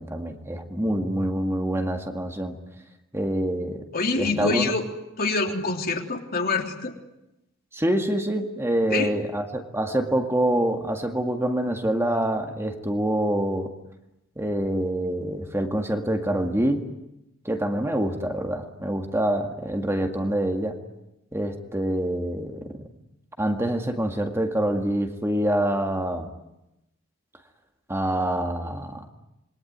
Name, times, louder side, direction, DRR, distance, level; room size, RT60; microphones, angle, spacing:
voice 1, 0.0-2.6 3.1-3.9 4.2-4.7 7.7-13.7 14.4-16.9 17.5-20.8 21.3-22.9 23.4-26.3 27.9-29.1, right 1 dB, 15° right, 4 dB, 2.0 m, -26 dB
voice 2, 3.9-4.8 5.2-6.9 8.9-9.1, left 3 dB, 50° left, 3 dB, 3.3 m, -25 dB
27.5 x 22.5 x 9.6 m, 0.90 s
head